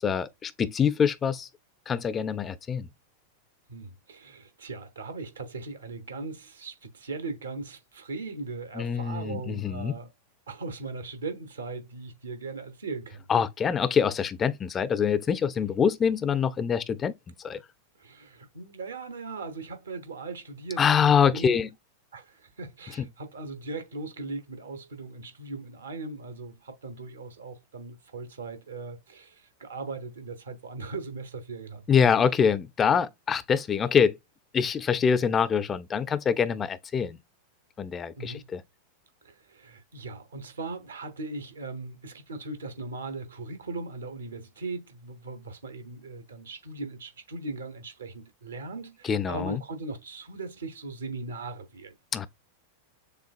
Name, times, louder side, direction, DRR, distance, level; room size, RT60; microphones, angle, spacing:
voice 1, 0.0-1.5 1.9-2.9 8.8-10.0 13.3-17.6 20.8-21.7 23.0-23.1 31.9-34.2 34.5-37.2 37.8-38.6 49.0-49.6 52.1-52.3, left 7 dB, 20° left, 0.4 m, -25 dB
voice 2, 3.7-10.1 10.5-13.3 18.0-21.6 22.1-31.8 38.2-38.4 39.2-51.9, right 3 dB, 70° right, 1.0 m, -39 dB
6.6 x 2.3 x 2.3 m
figure-of-eight pair, 90°, 0 cm